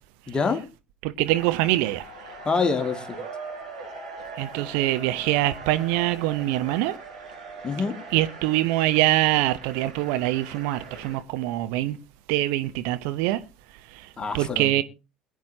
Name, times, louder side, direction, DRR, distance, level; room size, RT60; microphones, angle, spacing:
voice 1, 0.3-0.6 2.4-3.2 7.6-8.0 14.2-14.7, left 4 dB, 25° left, 2.1 m, -26 dB
voice 2, 1.0-2.1 4.4-7.0 8.1-12.0 12.3-13.4 13.9-14.1 14.3-14.8, right 16 dB, 65° right, 0.8 m, -24 dB
sound 1, 1.2-11.2, right 3 dB, 80° right, 6.9 m, -41 dB
21.5 x 9.4 x 2.8 m
figure-of-eight pair, 60°, 4 cm